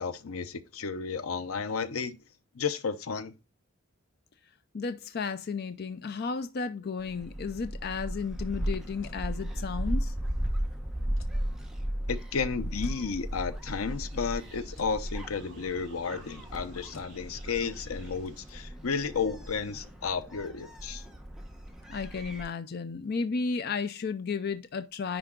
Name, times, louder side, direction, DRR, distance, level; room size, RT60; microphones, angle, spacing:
voice 1, 0.0-2.2 2.5-3.3 12.1-21.0, left 5 dB, 90° left, 0.7 m, -33 dB
voice 2, 4.7-10.1 21.9-25.2, left 4 dB, 45° left, 0.4 m, -33 dB
Gull seagull, 7.0-22.4, equal, 5° right, 0.9 m, -36 dB
sound 1, 9.0-9.3 11.1-11.4 12.8-13.1 14.7-15.0 16.9-17.2, left 3 dB, 65° left, 0.9 m, -51 dB
sound 2, 13.6-18.6, right 2 dB, 35° right, 2.3 m, -55 dB
10.0 x 3.5 x 3.7 m
head